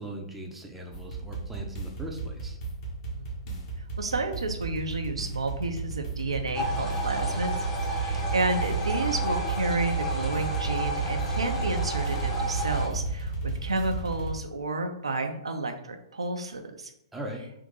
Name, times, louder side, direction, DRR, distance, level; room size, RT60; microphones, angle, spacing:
voice 1, 0.0-2.6 17.1-17.4, right 1 dB, 5° right, 0 dB, 0.6 m, -39 dB
sound 1, 0.9-14.3, right 3 dB, 40° left, 1.2 m, -34 dB
voice 2, 3.2-3.6 4.0-7.5 7.9-16.9, right 3 dB, 80° right, 5 dB, 0.6 m, -31 dB
sound 2, 6.5-12.9, right 2 dB, 20° left, 0.9 m, -31 dB
Squeak, 8.1-13.6, left 5 dB, 70° left, 0.3 m, -45 dB
3.7 x 2.6 x 3.8 m, 0.82 s
figure-of-eight pair, 120°, 3 cm